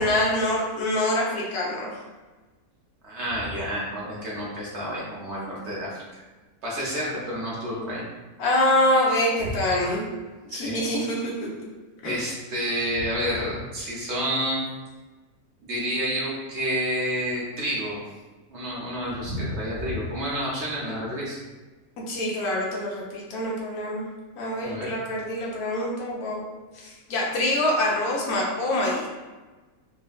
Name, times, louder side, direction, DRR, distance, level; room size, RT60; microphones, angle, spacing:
voice 1, 0.0-1.9 8.4-10.0 10.5-11.3 12.0-12.2 22.1-24.1 24.4-26.4 26.7-29.1, left 1 dB, 85° left, -3 dB, 1.3 m, -25 dB
voice 2, 3.0-6.2 6.6-8.0 9.4-9.5 10.5-10.8 12.0-14.6 15.6-18.0 18.5-21.4 24.6-24.9, equal, 55° right, -5 dB, 0.9 m, -29 dB
4.0 x 2.1 x 2.3 m, 1.3 s
omnidirectional pair, 1.6 m